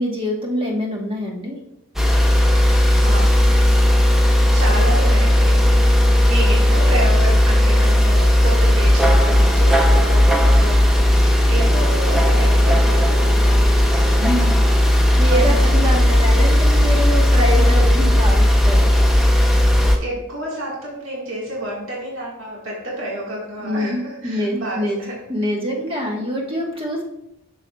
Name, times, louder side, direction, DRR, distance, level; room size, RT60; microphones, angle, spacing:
voice 1, 0.0-1.6 14.2-14.6 15.2-18.9 23.6-25.0 25.3-27.0, equal, 25° right, -1 dB, 1.1 m, -24 dB
sound 1, 2.0-20.0, left 1 dB, ahead, 0.5 m, -15 dB
voice 2, 2.5-3.3 4.5-13.6 15.3-15.8 20.0-25.5, right 1 dB, 65° right, -4 dB, 1.6 m, -30 dB
7.0 x 6.6 x 2.3 m, 0.83 s
head